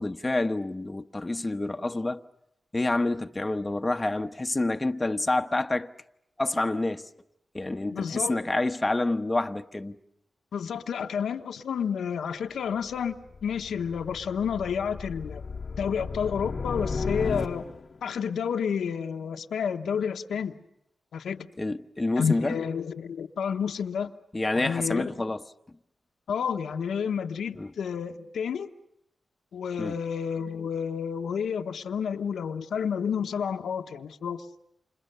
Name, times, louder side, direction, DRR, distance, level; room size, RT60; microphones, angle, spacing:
voice 1, 0.0-2.2 2.7-5.9 6.4-7.0 7.5-10.0 21.6-22.6 24.3-25.4 27.6-27.7 29.8-29.9, left 2 dB, 25° left, 1.1 m, -28 dB
voice 2, 7.9-8.4 10.5-15.4 15.8-17.7 18.0-20.5 21.1-21.5 22.2-24.1 24.5-25.1 26.3-28.7 29.5-34.5, left 7 dB, 90° left, 1.0 m, -30 dB
sound 1, 12.8-18.0, left 4 dB, 60° left, 1.0 m, -35 dB
30.0 x 27.0 x 6.8 m
cardioid pair, 50°, 0 cm